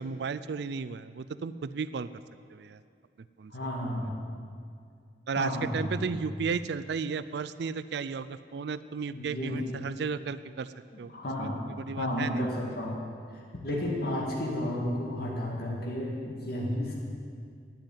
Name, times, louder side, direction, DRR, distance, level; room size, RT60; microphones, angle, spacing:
voice 1, 0.0-2.1 2.5-2.8 3.4-3.5 5.3-10.7 11.0-11.1 11.8-12.4, right 5 dB, 70° right, 15 dB, 0.4 m, -34 dB
voice 2, 3.5-4.2 5.4-6.1 9.1-9.8 11.1-11.6 12.0-13.0 13.3-16.9, left 1 dB, 60° left, -3 dB, 2.1 m, -32 dB
9.7 x 9.1 x 9.2 m, 2.2 s
head